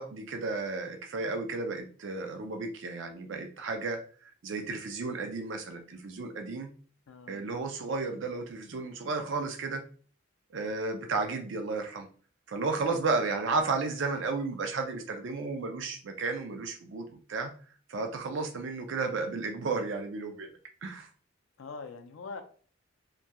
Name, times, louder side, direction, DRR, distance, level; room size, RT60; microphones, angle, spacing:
voice 1, 0.0-6.7 7.3-9.8 10.5-12.1 12.5-17.5 17.9-20.5 20.8-21.1, right 3 dB, 65° right, 5 dB, 0.4 m, -33 dB
voice 2, 7.1-7.4 21.6-22.4, left 4 dB, 75° left, 7 dB, 0.4 m, -42 dB
2.8 x 2.2 x 2.2 m, 0.42 s
head